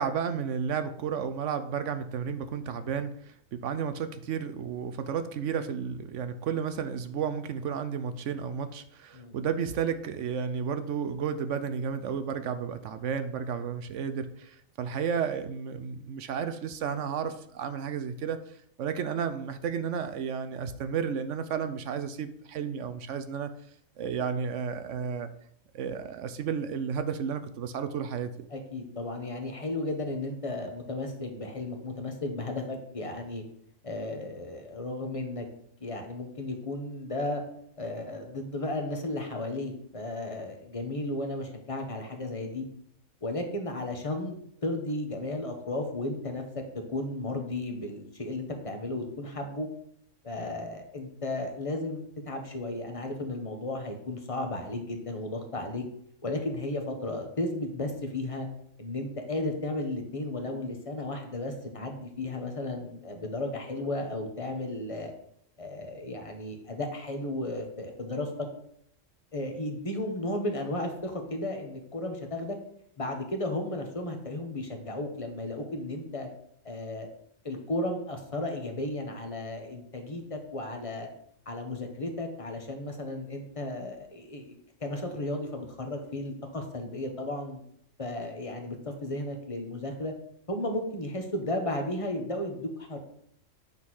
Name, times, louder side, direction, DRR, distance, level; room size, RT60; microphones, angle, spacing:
voice 1, 0.0-18.4 18.8-23.5 24.0-25.3 25.7-28.5, right 7 dB, 70° right, 10 dB, 0.9 m, -32 dB
voice 2, 28.5-33.4 33.8-35.4 35.8-37.4 37.8-42.6 43.2-44.3 44.6-46.4 46.9-49.7 50.2-55.8 56.2-58.5 58.8-65.1 65.6-68.3 69.3-72.6 73.0-76.3 76.6-77.1 77.4-81.1 81.5-84.5 84.8-87.6 88.0-90.1 90.5-93.0, left 2 dB, 25° left, 3 dB, 1.3 m, -34 dB
8.8 x 3.9 x 6.3 m, 0.69 s
omnidirectional pair, 1.3 m